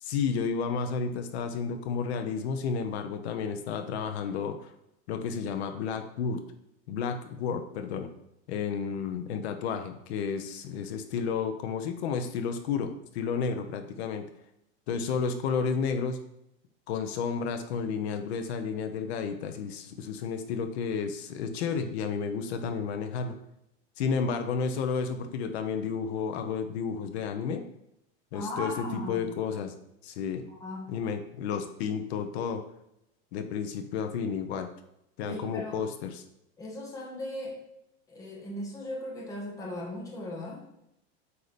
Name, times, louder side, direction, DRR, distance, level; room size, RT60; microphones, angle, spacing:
voice 1, 0.0-4.7 5.1-6.4 6.9-8.1 8.5-14.2 14.9-16.2 16.9-23.4 24.0-27.6 28.3-29.7 30.0-30.4 30.9-32.6 33.3-34.7 35.2-36.2, left 6 dB, 80° left, 7 dB, 0.9 m, -31 dB
voice 2, 28.3-29.3 30.5-30.9 35.2-35.8 36.6-37.6 38.1-40.6, left 1 dB, 10° left, -1 dB, 0.8 m, -38 dB
8.0 x 2.9 x 5.1 m, 0.80 s
supercardioid pair, 180°, 32 cm